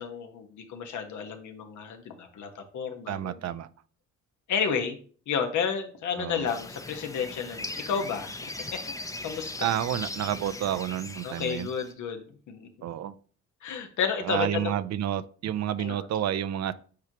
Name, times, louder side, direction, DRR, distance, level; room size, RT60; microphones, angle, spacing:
voice 1, 0.0-3.5 4.5-5.0 5.3-9.5 11.2-12.7 13.6-14.7 15.8-16.1, left 6 dB, 75° left, 5 dB, 1.3 m, -32 dB
voice 2, 3.1-3.7 6.2-6.5 9.6-11.7 12.8-13.1 14.2-16.7, right 10 dB, 60° right, 13 dB, 0.6 m, -30 dB
sound 1, 6.5-11.9, left 2 dB, 10° left, 0.7 m, -39 dB
8.4 x 4.7 x 2.9 m, 0.43 s
cardioid pair, 90°, 30 cm